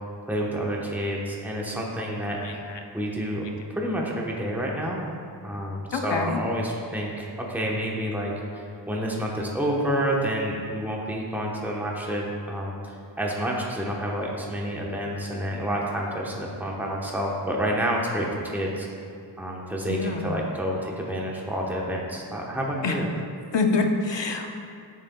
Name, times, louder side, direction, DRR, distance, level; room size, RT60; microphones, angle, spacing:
voice 1, 0.3-2.6 2.9-3.4 3.7-5.0 5.4-18.9 19.4-23.1, equal, 5° right, -3 dB, 1.0 m, -29 dB
voice 2, 5.9-6.4 19.9-20.3 22.8-22.9 23.5-24.5, left 4 dB, 75° left, 4 dB, 0.7 m, -25 dB
9.6 x 6.6 x 2.3 m, 2.4 s
wide cardioid pair, 50°, 44 cm